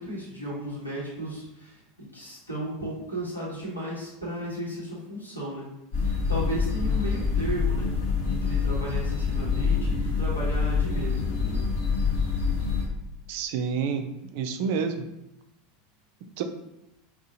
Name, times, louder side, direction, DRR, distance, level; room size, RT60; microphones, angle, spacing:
voice 1, 0.0-1.8 2.1-5.7 6.0-11.7, right 1 dB, 90° left, -7 dB, 1.2 m, -35 dB
sound 1, 5.9-12.8, left 5 dB, 65° left, 0.9 m, -26 dB
voice 2, 13.3-14.0 14.3-15.0 16.4-16.5, right 6 dB, 55° right, 7 dB, 0.3 m, -28 dB
3.6 x 2.3 x 2.7 m, 0.87 s
figure-of-eight pair, 80°, 0 cm